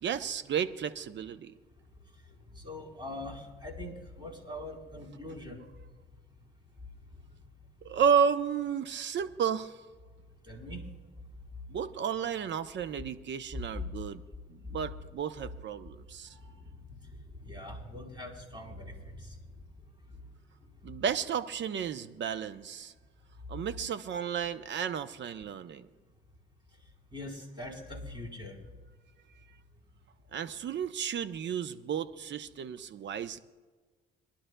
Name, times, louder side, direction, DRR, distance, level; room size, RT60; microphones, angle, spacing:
voice 1, 0.0-1.5 7.8-9.8 11.7-14.2 14.7-16.3 20.8-22.9 23.5-25.9 30.3-33.4, right 7 dB, 60° right, 12 dB, 0.8 m, -32 dB
voice 2, 2.5-5.6 10.4-10.8 13.5-13.6 16.3-16.6 17.1-19.4 27.1-28.6, left 1 dB, 20° right, 0 dB, 4.1 m, -42 dB
26.0 x 11.5 x 2.3 m, 1.4 s
supercardioid pair, 65°, 21 cm